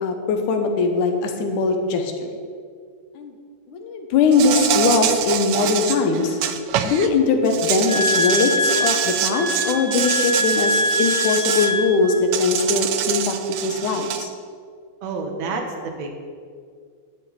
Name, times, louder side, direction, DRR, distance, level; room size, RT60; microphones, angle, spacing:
voice 1, 0.0-2.3 3.2-3.3 3.7-6.4 6.8-13.4 13.6-14.3, left 4 dB, 80° left, 5 dB, 2.6 m, -21 dB
Insect, 4.3-7.1 7.4-11.7 12.3-14.3, right 10 dB, 90° right, 1.3 m, -25 dB
sound 1, 7.9-12.2, left 1 dB, 35° left, 2.5 m, -23 dB
voice 2, 15.0-16.3, right 3 dB, 60° right, 3 dB, 2.4 m, -29 dB
10.5 x 6.3 x 8.9 m, 2.1 s
omnidirectional pair, 3.5 m